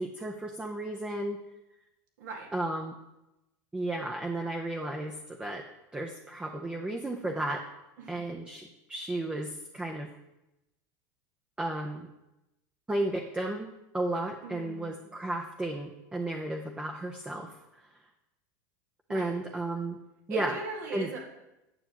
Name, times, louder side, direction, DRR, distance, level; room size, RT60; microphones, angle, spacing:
voice 1, 0.0-1.4 2.5-2.9 3.7-5.7 5.9-7.6 8.1-10.1 11.6-12.1 12.9-17.6 19.1-20.0 20.3-20.5 20.9-21.1, right 1 dB, 10° right, 2 dB, 0.6 m, -33 dB
voice 2, 2.2-2.5 8.0-8.3 14.4-15.1 19.1-19.3 20.3-21.3, right 4 dB, 90° right, 0 dB, 1.9 m, -40 dB
9.2 x 7.2 x 2.9 m, 0.92 s
supercardioid pair, 120°, 10 cm